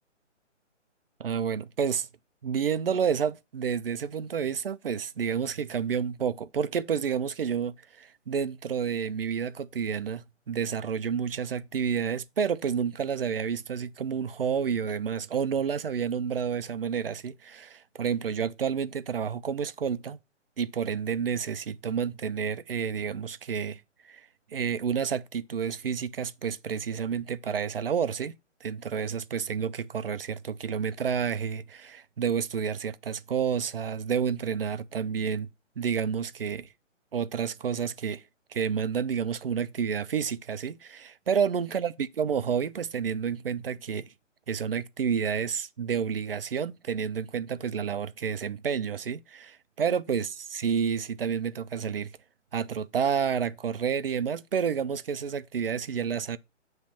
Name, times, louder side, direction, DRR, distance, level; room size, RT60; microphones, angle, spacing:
voice 1, 1.2-2.1 2.4-20.2 20.6-24.2 24.5-35.5 35.8-36.7 37.1-38.2 38.5-44.1 44.5-52.1 52.5-56.4, right 7 dB, 50° right, 0.6 m, -30 dB
8.7 x 3.2 x 5.6 m
hypercardioid pair, 170°, 37 cm